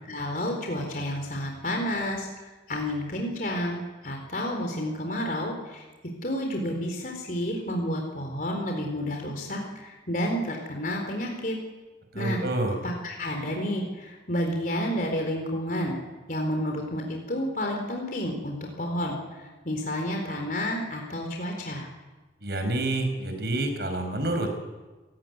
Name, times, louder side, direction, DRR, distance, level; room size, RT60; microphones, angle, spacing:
voice 1, 0.1-2.3 2.7-5.9 6.2-11.6 12.1-12.4 12.8-16.0 16.3-21.9, equal, 50° left, 2 dB, 4.2 m, -30 dB
voice 2, 12.1-12.8 22.4-24.6, right 2 dB, 65° right, 5 dB, 5.9 m, -28 dB
27.5 x 17.0 x 9.7 m, 1.2 s
head